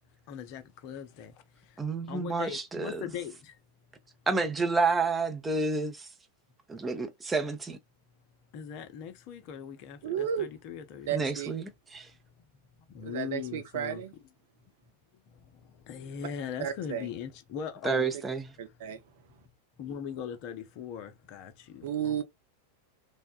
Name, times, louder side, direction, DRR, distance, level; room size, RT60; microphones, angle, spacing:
voice 1, 0.3-3.6 8.5-11.3 12.9-14.0 15.3-18.2 19.8-22.2, left 8 dB, 45° left, 0.6 m, -40 dB
voice 2, 1.8-3.1 4.3-6.1 6.8-7.8 11.1-12.1 17.8-18.5, right 4 dB, 15° right, 0.6 m, -29 dB
voice 3, 10.0-10.5 11.1-11.5 13.0-14.1 16.6-17.1 18.6-19.0 21.8-22.2, right 9 dB, 55° right, 0.6 m, -33 dB
3.5 x 2.1 x 2.3 m
figure-of-eight pair, 90°, 0 cm